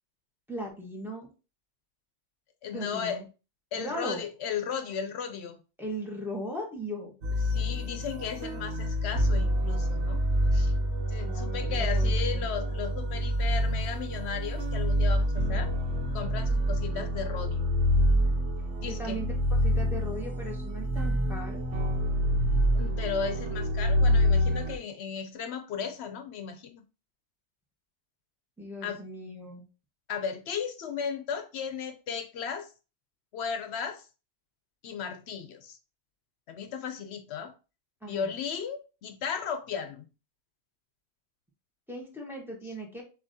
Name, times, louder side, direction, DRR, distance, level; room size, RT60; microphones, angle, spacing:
voice 1, 0.5-1.3 2.7-3.3 3.7-4.2 5.8-7.1 11.2-12.5 18.9-19.3 19.6-21.7 28.6-29.6 38.0-38.3 41.9-43.0, equal, ahead, 1.1 m, -38 dB
voice 2, 2.6-3.2 3.7-5.6 7.4-10.2 10.5-10.7 11.1-15.7 16.1-17.7 18.8-19.2 22.7-26.8 28.8-29.0 30.1-32.7 33.3-34.1 34.8-35.8 36.5-37.5 38.1-40.0, left 6 dB, 75° left, 0.8 m, -35 dB
sound 1, 7.2-24.8, equal, 85° right, 1.1 m, -27 dB
6.9 x 2.7 x 2.7 m
omnidirectional pair, 1.1 m